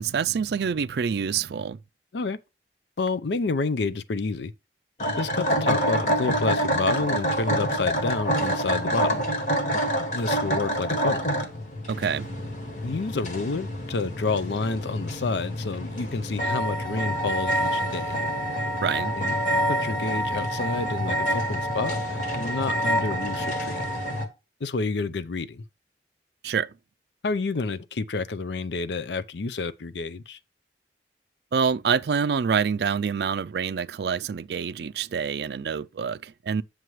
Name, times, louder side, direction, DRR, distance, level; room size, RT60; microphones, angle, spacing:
voice 1, 0.0-1.8 11.9-12.3 18.8-19.1 26.4-26.7 31.5-36.6, right 6 dB, 65° right, 0.4 m, -26 dB
voice 2, 3.0-4.5 5.2-9.2 10.1-11.3 12.8-18.2 19.1-22.0 22.3-23.8 24.6-25.6 27.2-30.4, left 3 dB, 75° left, 0.6 m, -29 dB
sound 1, 5.0-24.3, equal, 45° left, 1.5 m, -27 dB
9.2 x 6.5 x 3.1 m
head